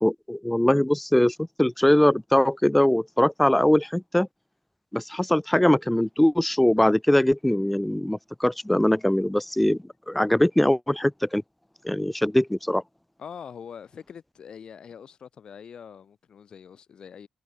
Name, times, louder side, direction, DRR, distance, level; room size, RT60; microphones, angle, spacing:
voice 1, 0.0-4.3 4.9-9.8 10.1-11.4 11.8-12.8, left 1 dB, 5° left, 1.3 m, -22 dB
voice 2, 13.2-17.3, left 7 dB, 45° left, 4.0 m, -43 dB
wide cardioid pair, 170°, 2 cm